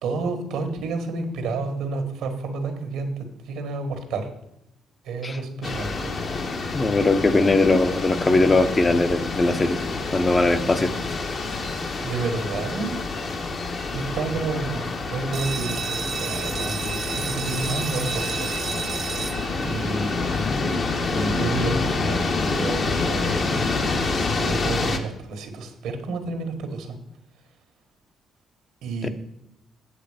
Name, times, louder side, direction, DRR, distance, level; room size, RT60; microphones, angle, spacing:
voice 1, 0.0-4.3 5.0-6.1 12.0-13.2 13.9-18.6 19.6-23.5 23.8-26.9 28.8-29.1, right 3 dB, 90° right, 6 dB, 1.6 m, -30 dB
sound 1, 5.6-25.0, left 3 dB, 50° left, 1.2 m, -27 dB
voice 2, 6.7-9.8 10.1-10.9 29.0-29.1, left 2 dB, 30° left, 8 dB, 0.7 m, -20 dB
sound 2, 15.3-20.8, right 6 dB, 55° right, 0.9 m, -32 dB
8.2 x 7.8 x 5.0 m, 0.82 s
cardioid pair, 90°, 0 cm